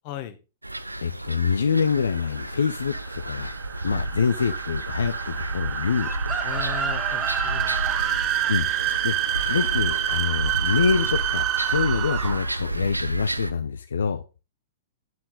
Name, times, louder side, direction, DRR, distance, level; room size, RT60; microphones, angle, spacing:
voice 1, 0.0-0.4 6.4-8.0, left 12 dB, 40° left, 10 dB, 1.3 m, -37 dB
sound 1, 0.6-13.5, right 1 dB, 85° right, 0.6 m, -31 dB
voice 2, 1.0-3.5 3.8-6.1 8.5-8.7 9.0-9.1 9.5-14.2, left 6 dB, 65° left, 9 dB, 0.6 m, -25 dB
sound 2, 1.9-12.6, right 13 dB, 30° right, 0.5 m, -28 dB
Chicken rooster, 6.0-11.0 11.3-11.6, right 3 dB, 15° right, 1.9 m, -35 dB
9.4 x 7.6 x 4.0 m, 0.30 s
figure-of-eight pair, 105°, 0 cm